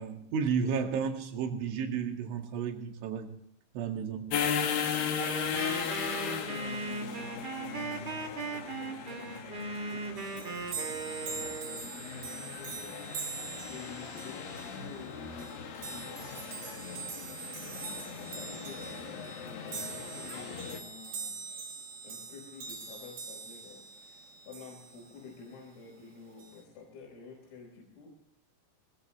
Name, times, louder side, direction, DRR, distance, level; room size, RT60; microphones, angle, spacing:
voice 1, 0.0-3.3 3.7-4.4, right 6 dB, 75° right, 3 dB, 4.4 m, -32 dB
sound 1, 4.3-20.8, left 7 dB, 55° left, 3.0 m, -37 dB
Wind instrument woodwind instrument, 5.2-11.8, right 3 dB, 35° right, 1.9 m, -38 dB
voice 2, 5.7-11.0 11.2-17.3 18.2-21.7 22.0-28.1, left 4 dB, 90° left, -2 dB, 7.2 m, -50 dB
sound 2, 10.2-25.2 26.4-26.6, right 5 dB, 50° right, 4.3 m, -43 dB
22.5 x 19.0 x 3.1 m, 0.70 s
omnidirectional pair, 5.8 m